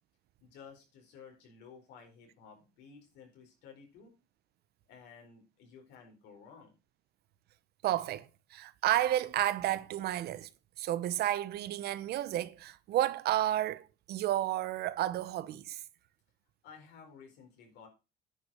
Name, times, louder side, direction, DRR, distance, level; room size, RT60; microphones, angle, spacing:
voice 1, 0.4-4.2 4.9-6.7 16.6-17.9, left 6 dB, 85° left, 4.4 m, -54 dB
voice 2, 7.8-10.5 10.8-15.8, right 13 dB, 70° right, 0.8 m, -31 dB
9.9 x 5.2 x 6.8 m
cardioid pair, 110°, 17 cm